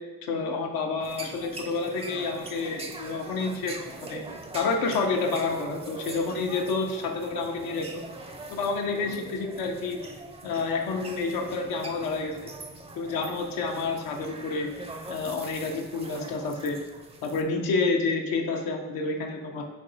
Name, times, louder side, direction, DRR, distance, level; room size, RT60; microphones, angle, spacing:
voice 1, 0.3-4.2 4.5-7.9 8.5-10.0 10.4-12.5 13.0-14.7 15.1-16.8 17.2-19.6, left 4 dB, 90° left, 1 dB, 0.7 m, -29 dB
sound 1, 1.0-17.4, right 2 dB, 20° right, 0.4 m, -42 dB
4.4 x 2.9 x 3.9 m, 1.3 s
cardioid pair, 85°, 34 cm